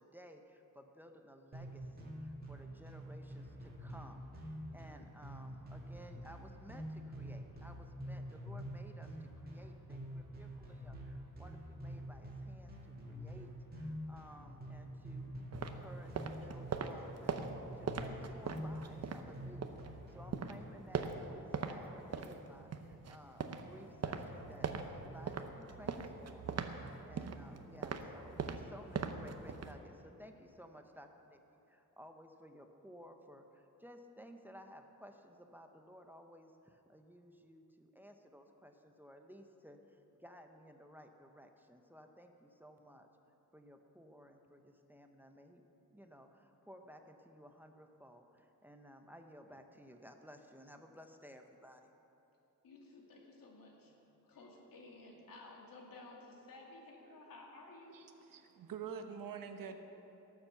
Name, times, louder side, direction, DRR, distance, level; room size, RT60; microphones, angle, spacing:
voice 1, 0.0-43.1 43.5-45.6 45.9-51.9, equal, 5° right, 5 dB, 0.7 m, -57 dB
sound 1, 1.5-20.3, equal, 30° right, 2.2 m, -47 dB
sound 2, 15.5-19.9 20.2-21.8 22.0-29.8, right 5 dB, 50° right, 0.8 m, -41 dB
voice 2, 52.6-58.0, left 2 dB, 80° left, -1 dB, 2.4 m, -55 dB
voice 3, 57.9-59.8, right 7 dB, 75° right, 6 dB, 1.0 m, -45 dB
17.5 x 7.2 x 7.0 m, 3.0 s
wide cardioid pair, 155°, 33 cm